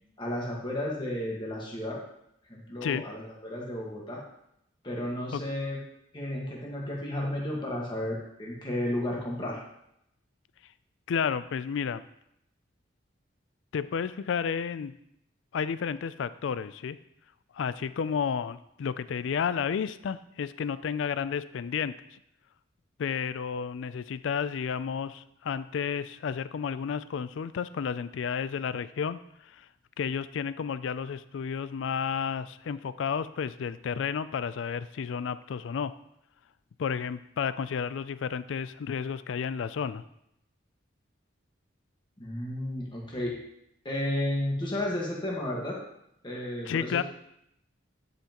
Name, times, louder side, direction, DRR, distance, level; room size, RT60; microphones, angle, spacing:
voice 1, 0.2-2.0 2.5-4.2 4.8-5.8 6.1-9.6 42.2-43.4 43.8-45.8 46.2-47.0, left 1 dB, 25° left, -3 dB, 1.5 m, -33 dB
voice 2, 11.1-12.0 13.7-14.9 15.5-17.0 17.5-22.2 23.0-29.2 29.5-29.7 30.0-35.9 36.8-40.0 46.7-47.0, left 7 dB, 70° left, 15 dB, 0.3 m, -31 dB
9.8 x 5.7 x 3.0 m, 0.78 s
head